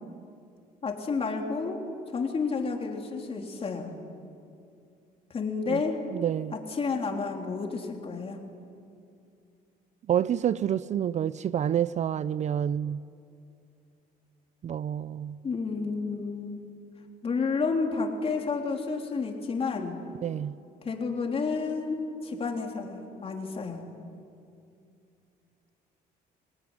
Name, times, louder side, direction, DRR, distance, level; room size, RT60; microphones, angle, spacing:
voice 1, 0.8-1.9 2.1-3.9 5.3-6.0 6.5-8.4 15.4-16.6 17.2-20.0 20.8-23.8, left 4 dB, 35° left, 3.6 m, -30 dB
voice 2, 6.1-6.6 10.1-13.0 14.6-15.4 20.2-20.5, right 9 dB, 45° right, 0.5 m, -28 dB
26.0 x 19.0 x 9.9 m
cardioid pair, 110°, 17 cm